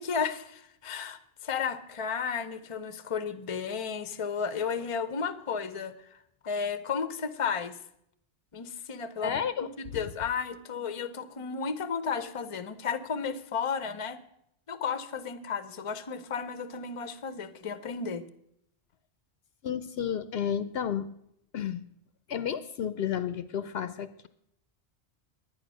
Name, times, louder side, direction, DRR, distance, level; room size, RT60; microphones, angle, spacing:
voice 1, 0.0-7.8 8.5-9.4 9.8-14.2 14.7-18.2, left 6 dB, 35° left, 13 dB, 0.7 m, -33 dB
voice 2, 9.2-9.7 19.6-21.2 21.5-21.8 22.3-24.3, left 8 dB, 65° left, 12 dB, 0.8 m, -32 dB
11.0 x 9.5 x 6.2 m, 0.75 s
omnidirectional pair, 1.1 m